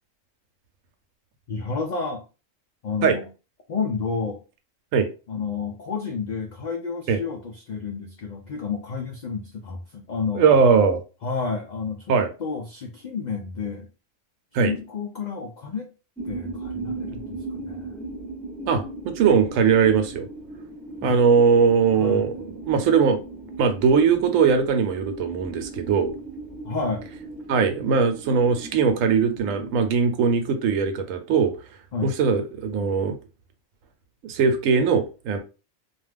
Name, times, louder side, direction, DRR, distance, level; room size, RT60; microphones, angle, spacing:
voice 1, 1.5-2.2 2.8-3.3 3.7-4.4 5.3-10.6 11.2-12.1 12.4-13.9 14.5-15.9 16.2-18.0 21.0-21.2 21.9-22.5 26.6-27.1 31.9-32.1, left 5 dB, 80° left, 0.4 m, -30 dB
voice 2, 10.3-11.0 12.1-12.3 14.5-14.7 18.7-20.3 21.0-22.3 22.7-23.2 23.6-26.1 27.5-31.5 32.0-33.2 34.2-35.4, right 6 dB, 85° right, 1.0 m, -20 dB
sound 1, 16.2-29.9, right 2 dB, ahead, 0.4 m, -38 dB
2.5 x 2.3 x 3.3 m
omnidirectional pair, 1.3 m